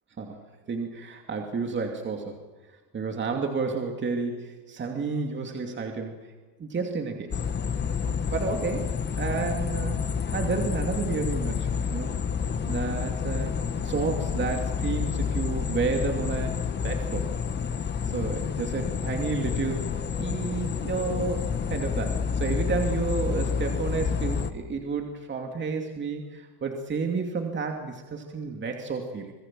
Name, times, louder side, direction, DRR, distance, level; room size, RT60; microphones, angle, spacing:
voice 1, 0.7-2.4 2.9-6.1 6.6-7.3 8.0-8.9 9.2-10.0 10.3-12.1 12.7-13.5 13.8-16.6 16.8-17.3 18.0-19.8 20.2-29.3, right 4 dB, 25° right, 3 dB, 2.7 m, -31 dB
sound 1, 7.3-24.5, left 6 dB, 25° left, 1.4 m, -29 dB
27.0 x 21.0 x 7.7 m, 1.3 s
cardioid pair, 145°, 43 cm